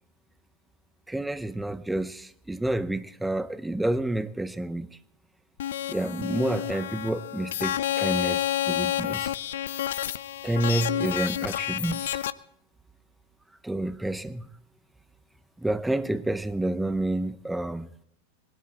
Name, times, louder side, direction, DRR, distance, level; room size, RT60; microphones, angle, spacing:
voice 1, 1.1-4.9 5.9-9.3 10.4-12.2 13.6-14.5 15.6-17.9, right 1 dB, 5° right, 0.7 m, -29 dB
sound 1, 5.6-12.3, left 12 dB, 60° left, 0.5 m, -29 dB
20.0 x 12.5 x 4.4 m
figure-of-eight pair, 90°, 0 cm